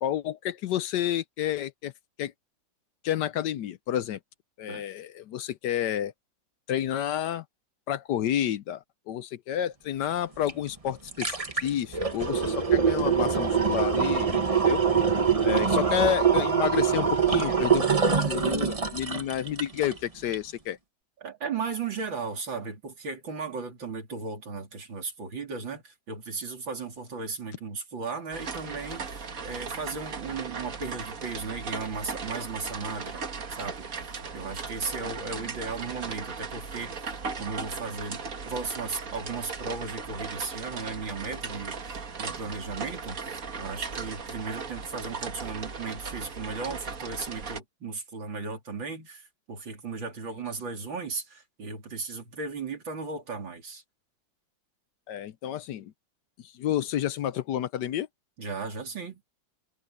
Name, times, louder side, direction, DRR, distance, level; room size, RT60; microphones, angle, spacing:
voice 1, 0.0-1.9 2.2-2.3 3.0-4.2 4.6-6.1 6.7-7.4 7.9-14.8 15.4-20.8 35.4-35.5 55.1-55.9 56.4-58.1, left 11 dB, 70° left, 1.2 m, -30 dB
sound 1, 10.5-10.6 10.9-20.0 20.3-20.4, right 6 dB, 20° right, 1.2 m, -24 dB
voice 2, 21.2-33.2 33.5-33.9 34.3-37.0 37.4-53.8 58.4-59.2, right 4 dB, 80° right, 4.2 m, -36 dB
sound 2, 28.3-47.6, right 5 dB, 45° right, 2.1 m, -37 dB
omnidirectional pair, 2.1 m